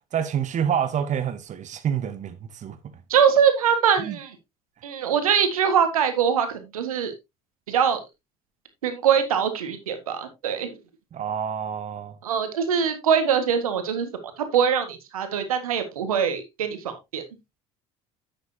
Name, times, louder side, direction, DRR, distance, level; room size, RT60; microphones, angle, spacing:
voice 1, 0.1-2.8 4.0-4.2 11.1-12.1, right 8 dB, 40° right, 1.1 m, -27 dB
voice 2, 3.1-4.3 4.8-7.1 7.7-8.0 8.8-10.7 12.2-14.1 14.4-17.2, right 7 dB, 85° right, 1.7 m, -23 dB
10.5 x 8.0 x 2.8 m
hypercardioid pair, 65°, 18 cm